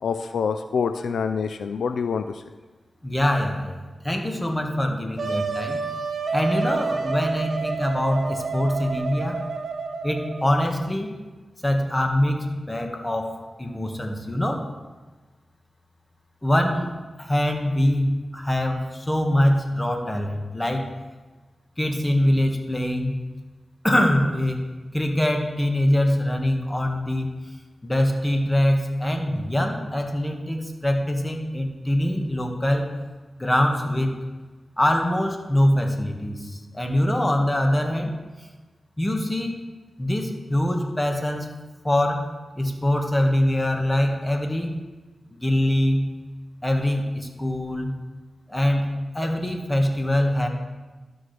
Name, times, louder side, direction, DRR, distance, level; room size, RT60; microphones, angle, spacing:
voice 1, 0.0-2.4, left 6 dB, 90° left, 9 dB, 0.3 m, -26 dB
voice 2, 3.0-5.8 6.3-9.4 10.0-11.1 11.6-14.6 16.4-16.9 17.2-20.9 21.8-23.2 23.8-24.6 24.9-27.3 27.8-32.9 33.4-34.1 34.8-38.1 39.0-39.6 40.0-41.5 41.8-42.3 42.6-44.7 45.3-46.0 46.6-47.9 48.5-48.9 49.1-50.5, left 1 dB, 20° left, 3 dB, 1.5 m, -23 dB
Wind instrument woodwind instrument, 5.2-10.7, right 4 dB, 75° right, 0.9 m, -29 dB
12.5 x 6.1 x 3.3 m, 1.3 s
cardioid pair, 50°, 0 cm